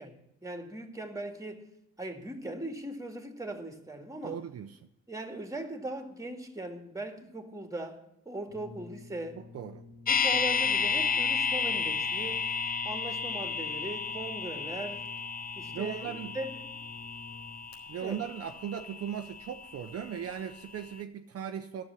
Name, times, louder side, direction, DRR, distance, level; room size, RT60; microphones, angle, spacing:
voice 1, 0.0-1.7 2.0-4.4 5.1-8.0 8.3-9.4 10.1-12.5 12.8-15.1 15.6-16.8 18.0-18.2, right 1 dB, 10° right, 5 dB, 2.1 m, -39 dB
voice 2, 4.2-4.8 9.5-9.8 15.7-16.3 17.9-21.8, right 8 dB, 50° right, 6 dB, 0.7 m, -38 dB
Brass instrument, 8.5-17.8, left 3 dB, 65° left, 4.0 m, -50 dB
sound 1, 10.1-20.1 20.4-20.5, left 5 dB, 30° left, 0.5 m, -32 dB
11.0 x 7.1 x 8.3 m, 0.82 s
cardioid pair, 90°, 30 cm